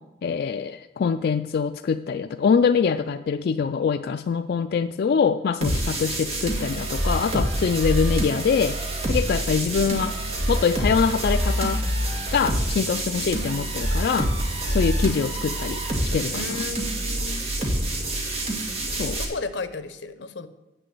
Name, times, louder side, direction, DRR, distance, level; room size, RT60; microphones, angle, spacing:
voice 1, 0.2-8.8 9.1-10.1 10.5-11.8 12.3-14.3 14.7-16.6 18.9-19.2, left 6 dB, 60° left, 8 dB, 0.3 m, -24 dB
sound 1, 5.6-19.2, right 1 dB, 35° right, 1.8 m, -26 dB
voice 2, 16.3-17.4 19.2-20.5, left 4 dB, 85° left, 12 dB, 0.8 m, -34 dB
7.7 x 6.8 x 7.6 m, 1.0 s
head